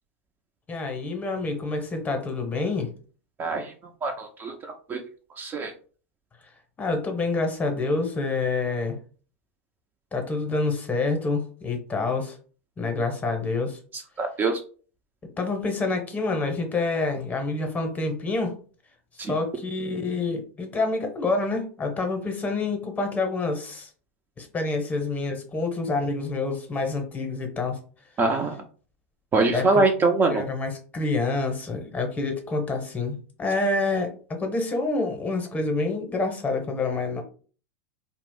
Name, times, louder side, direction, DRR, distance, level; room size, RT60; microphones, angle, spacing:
voice 1, 0.7-2.9 6.8-9.0 10.1-12.4 12.8-13.8 15.4-18.5 19.1-23.9 24.4-27.8 29.5-29.7 30.3-37.2, left 3 dB, 20° left, 5 dB, 0.8 m, -27 dB
voice 2, 3.4-3.7 4.0-4.5 4.9-5.0 5.4-5.7 13.9-14.6 19.2-19.4 28.2-28.6 29.3-30.4, right 3 dB, 25° right, 4 dB, 0.4 m, -23 dB
2.4 x 2.0 x 3.6 m, 0.40 s
hypercardioid pair, 100°, 8 cm